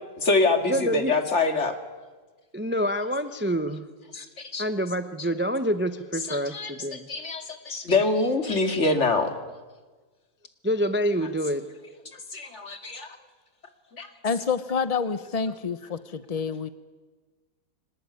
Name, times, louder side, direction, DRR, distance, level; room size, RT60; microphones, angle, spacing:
voice 1, 0.2-1.7 4.1-4.6 6.3-9.3 12.3-13.1 13.9-14.1, left 3 dB, 40° left, 7 dB, 2.5 m, -25 dB
voice 2, 0.7-1.1 2.5-3.8 4.6-7.1 10.6-11.6, equal, 10° right, 10 dB, 0.5 m, -27 dB
voice 3, 14.2-16.7, left 5 dB, 70° left, 14 dB, 0.3 m, -28 dB
25.0 x 19.0 x 9.7 m, 1.4 s
omnidirectional pair, 2.0 m